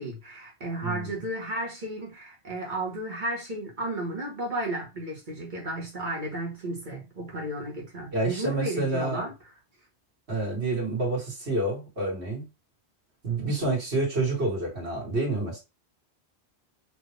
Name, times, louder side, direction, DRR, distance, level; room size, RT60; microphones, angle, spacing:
voice 1, 0.0-9.3 10.9-11.0, right 1 dB, 45° right, 1.5 m, -33 dB
voice 2, 0.8-1.1 8.1-9.2 10.3-12.5 13.2-15.6, right 2 dB, 70° right, 2.4 m, -28 dB
4.4 x 2.8 x 3.4 m
omnidirectional pair, 1.1 m